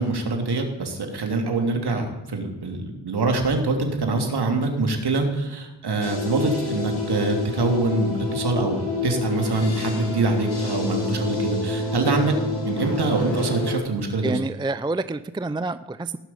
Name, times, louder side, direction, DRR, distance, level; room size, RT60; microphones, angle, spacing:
voice 1, 0.0-12.3 12.6-14.4, right 3 dB, 55° right, 4 dB, 3.1 m, -24 dB
sound 1, 6.0-13.8, left 2 dB, 55° left, 5.8 m, -28 dB
voice 2, 14.2-16.2, right 3 dB, 10° right, 14 dB, 0.5 m, -27 dB
17.5 x 6.2 x 9.3 m, 1.0 s
supercardioid pair, 50°, 46 cm